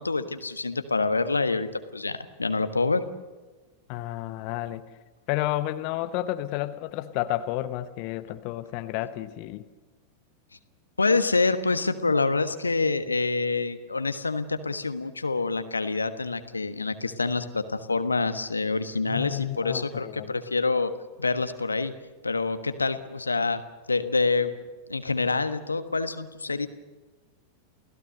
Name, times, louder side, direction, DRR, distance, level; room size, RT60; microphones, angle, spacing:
voice 1, 0.0-3.0 11.0-20.9 21.2-21.9 22.2-23.6 23.9-24.5 24.9-26.7, left 3 dB, 80° left, 10 dB, 1.3 m, -26 dB
voice 2, 3.9-4.8 5.3-9.7 19.1-20.3, left 15 dB, 45° left, 11 dB, 1.1 m, -31 dB
29.0 x 17.0 x 6.7 m, 1.2 s
figure-of-eight pair, 90°, 0 cm